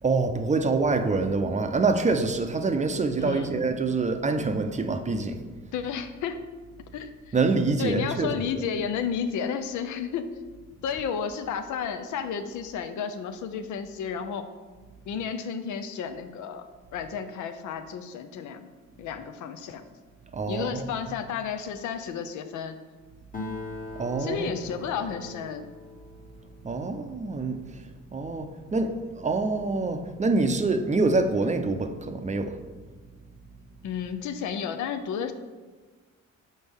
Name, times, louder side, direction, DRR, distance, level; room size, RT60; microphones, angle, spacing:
voice 1, 0.0-5.4 7.3-8.6 20.3-21.1 23.9-24.8 26.6-32.6, right 3 dB, 25° right, 7 dB, 0.5 m, -26 dB
voice 2, 3.2-3.6 5.7-6.4 6.9-7.3 7.8-10.3 10.8-14.5 15.1-16.6 16.9-18.7 19.0-19.8 20.5-22.8 24.2-25.7 33.8-35.3, left 7 dB, 75° left, 8 dB, 0.6 m, -32 dB
Acoustic guitar, 23.3-27.1, left 2 dB, 25° left, 1.1 m, -41 dB
6.2 x 4.3 x 3.5 m, 1.4 s
cardioid pair, 90°, 30 cm